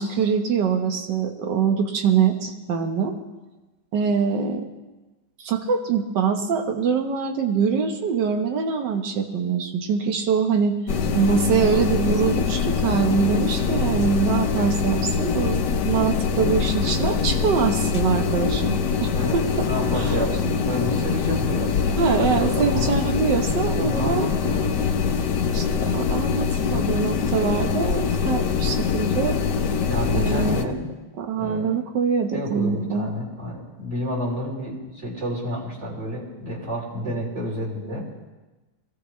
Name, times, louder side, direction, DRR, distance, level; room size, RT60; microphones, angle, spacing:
voice 1, 0.0-3.2 3.9-4.7 5.4-10.8 11.1-18.7 19.0-20.2 22.0-24.3 25.5-29.4 30.1-30.7 31.2-33.1, right 6 dB, 60° right, 5 dB, 1.8 m, -24 dB
sound 1, 10.9-30.7, left 6 dB, 60° left, 1.3 m, -24 dB
voice 2, 19.1-22.9 23.8-24.8 29.9-30.9 31.4-31.7 32.3-38.0, equal, 35° right, -3 dB, 3.8 m, -30 dB
22.0 x 16.0 x 3.3 m, 1.1 s
omnidirectional pair, 2.3 m